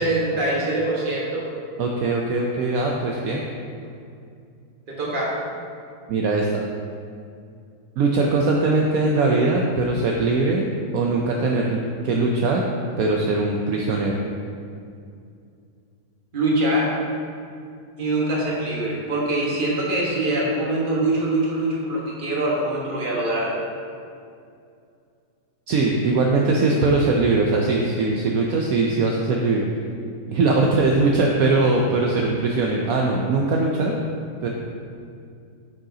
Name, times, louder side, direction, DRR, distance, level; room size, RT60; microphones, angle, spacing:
voice 1, 0.0-1.5 4.9-5.5 16.3-17.0 18.0-23.5, right 1 dB, 35° right, -4 dB, 1.4 m, -23 dB
voice 2, 1.8-3.4 6.1-6.6 8.0-10.7 10.9-12.7 13.0-14.2 25.7-29.7 30.3-34.0 34.4-34.5, right 3 dB, 70° right, 0 dB, 1.0 m, -21 dB
8.9 x 6.4 x 2.8 m, 2.4 s
omnidirectional pair, 1.7 m